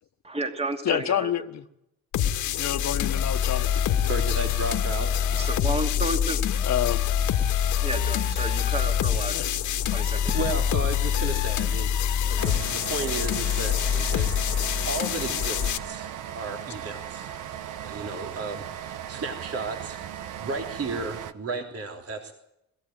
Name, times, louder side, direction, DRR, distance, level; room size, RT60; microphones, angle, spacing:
voice 1, 0.2-1.3 5.3-6.4 7.8-10.4, right 2 dB, 20° right, 2.7 m, -32 dB
voice 2, 0.8-1.6 2.6-4.4 6.6-7.0 9.3-9.7, left 10 dB, 65° left, 1.4 m, -29 dB
sound 1, 2.1-15.8, left 9 dB, 80° left, 1.8 m, -25 dB
voice 3, 4.1-5.1 10.3-16.1 16.3-17.3 17.8-22.3, right 3 dB, 50° right, 3.4 m, -34 dB
sound 2, 12.4-21.3, right 10 dB, 85° right, 1.3 m, -37 dB
22.0 x 15.5 x 9.1 m
cardioid pair, 90°, 30 cm